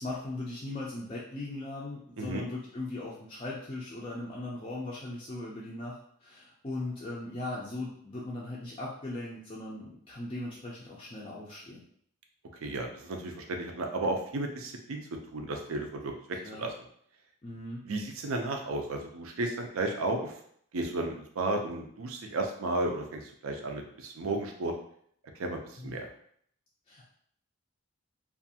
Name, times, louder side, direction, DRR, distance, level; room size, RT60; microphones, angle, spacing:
voice 1, 0.0-11.8 16.4-16.7 17.4-17.8 25.8-25.9 26.9-27.1, left 2 dB, 25° left, -6 dB, 0.4 m, -39 dB
voice 2, 12.6-15.0 15.3-16.1 16.6-16.7 17.9-20.3 20.7-24.7 25.4-26.1, right 2 dB, 70° right, 3 dB, 0.4 m, -33 dB
2.5 x 2.3 x 2.7 m, 0.65 s
head